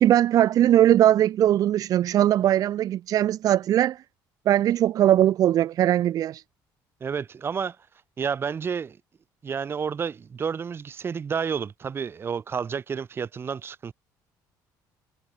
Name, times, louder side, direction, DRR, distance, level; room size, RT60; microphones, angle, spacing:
voice 1, 0.0-4.0 4.5-6.4, right 12 dB, 50° right, 0.6 m, -20 dB
voice 2, 7.0-7.8 8.2-9.0 9.4-13.9, right 6 dB, 30° right, 1.4 m, -30 dB
cardioid pair, 125°, 8 cm